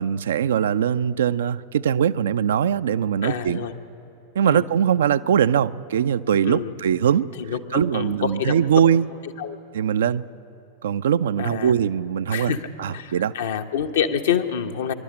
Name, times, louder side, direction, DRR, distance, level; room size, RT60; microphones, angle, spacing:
voice 1, 0.0-3.7 4.4-7.3 7.7-9.1 9.7-10.2 10.8-12.5 12.8-13.3, right 8 dB, 60° right, 13 dB, 0.4 m, -21 dB
voice 2, 3.2-3.7 4.5-4.6 6.4-6.7 7.4-8.5 9.4-9.6 11.4-11.7 12.3-12.6 12.9-14.9, left 8 dB, 60° left, 6 dB, 1.0 m, -27 dB
25.5 x 12.0 x 8.6 m, 2.7 s
figure-of-eight pair, 90°, 0 cm